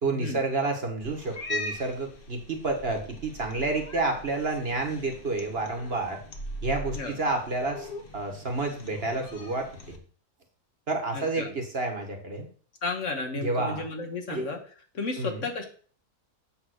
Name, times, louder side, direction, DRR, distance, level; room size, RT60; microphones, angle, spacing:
voice 1, 0.0-6.2 6.6-10.0 10.9-12.5 13.4-13.8 14.3-14.5 15.2-15.5, right 3 dB, 45° right, 4 dB, 1.4 m, -30 dB
Cat, 1.0-10.0, left 1 dB, 40° left, 1.2 m, -40 dB
voice 2, 11.1-11.5 12.8-14.6 14.9-15.7, left 3 dB, 55° left, 5 dB, 1.4 m, -33 dB
8.6 x 3.5 x 6.3 m, 0.44 s
omnidirectional pair, 1.6 m